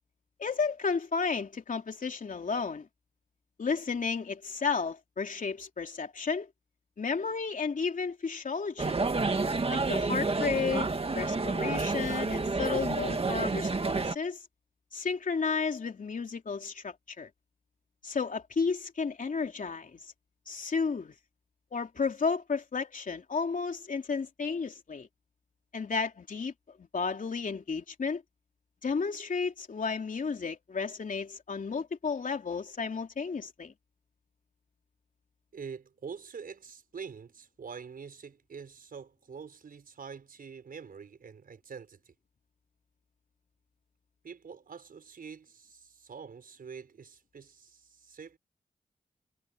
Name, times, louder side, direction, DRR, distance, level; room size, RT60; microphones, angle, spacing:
voice 1, 0.4-2.9 3.6-6.5 7.0-9.0 9.7-10.9 11.1-14.4 14.9-17.3 18.0-20.1 20.5-21.1 21.7-25.1 25.7-26.5 26.8-28.2 28.8-33.7, left 5 dB, 65° left, 3.2 m, -32 dB
sound 1, 8.8-14.2, right 3 dB, 40° right, 2.1 m, -29 dB
voice 2, 35.5-42.1 44.2-48.4, right 6 dB, 80° right, 5.4 m, -45 dB
cardioid pair, 65°, 15 cm